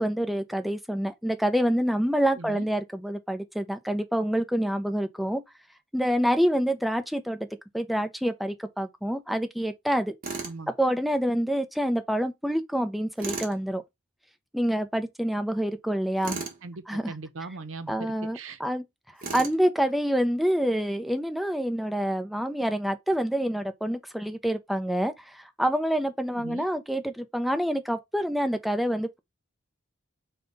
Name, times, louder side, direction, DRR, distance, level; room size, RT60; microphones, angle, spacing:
voice 1, 0.0-5.4 5.9-7.5 7.7-10.2 10.8-13.8 14.5-16.4 16.9-17.1 17.9-18.8 19.3-29.2, equal, ahead, 0.4 m, -27 dB
voice 2, 2.4-2.7 10.4-10.7 16.3-18.6 26.4-26.7, right 3 dB, 85° right, 0.7 m, -40 dB
Tools, 10.2-10.6 13.2-13.6 16.2-16.6 19.2-19.6, right 4 dB, 45° right, 1.1 m, -34 dB
5.3 x 2.2 x 3.9 m
head